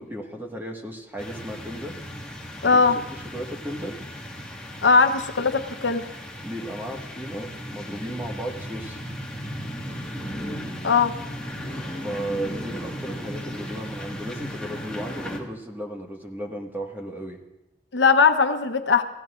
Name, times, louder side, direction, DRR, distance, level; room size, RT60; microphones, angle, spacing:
voice 1, 0.0-2.0 2.7-4.0 6.4-9.0 12.0-17.4, right 1 dB, 10° right, 1 dB, 1.7 m, -35 dB
sound 1, 1.2-15.4, equal, 5° left, 1.8 m, -36 dB
voice 2, 2.6-3.0 4.8-6.1 10.8-11.1 17.9-19.0, left 5 dB, 85° left, 7 dB, 1.0 m, -19 dB
30.0 x 15.5 x 2.5 m, 0.98 s
head